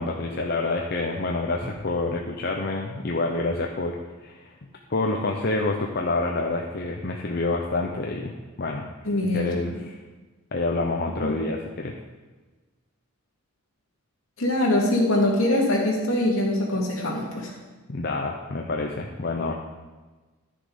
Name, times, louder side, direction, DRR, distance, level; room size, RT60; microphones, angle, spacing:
voice 1, 0.0-4.0 4.2-4.5 4.9-8.8 9.2-9.9 10.5-12.0 17.9-19.5, left 2 dB, 50° left, 1 dB, 0.7 m, -27 dB
voice 2, 9.0-9.5 11.2-11.3 14.4-17.5, left 1 dB, 70° left, -3 dB, 2.7 m, -23 dB
11.5 x 6.8 x 5.2 m, 1.3 s
head